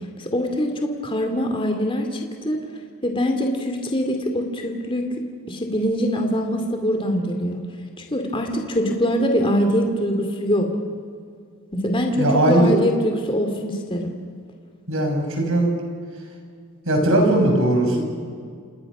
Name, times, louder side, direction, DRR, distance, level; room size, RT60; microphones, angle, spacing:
voice 1, 0.2-2.6 3.0-5.1 5.5-7.6 8.1-10.7 11.7-14.2, equal, 25° left, 4 dB, 2.5 m, -23 dB
voice 2, 12.2-12.7 14.9-15.7 16.9-18.1, right 1 dB, 65° right, 3 dB, 5.9 m, -19 dB
29.0 x 27.5 x 6.2 m, 2.1 s
head